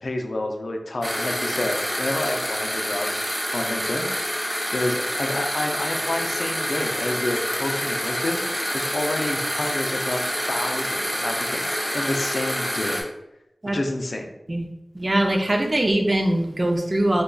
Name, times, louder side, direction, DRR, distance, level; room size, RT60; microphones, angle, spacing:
voice 1, 0.0-3.2 3.5-4.4 4.7-10.2 10.5-13.0 13.7-14.4, left 1 dB, 75° left, 4 dB, 0.4 m, -29 dB
sound 1, 1.0-13.0, equal, 5° left, 1.1 m, -27 dB
voice 2, 14.9-17.2, right 1 dB, 40° right, 3 dB, 0.5 m, -22 dB
5.0 x 2.3 x 2.3 m, 0.88 s
cardioid pair, 40°, 0 cm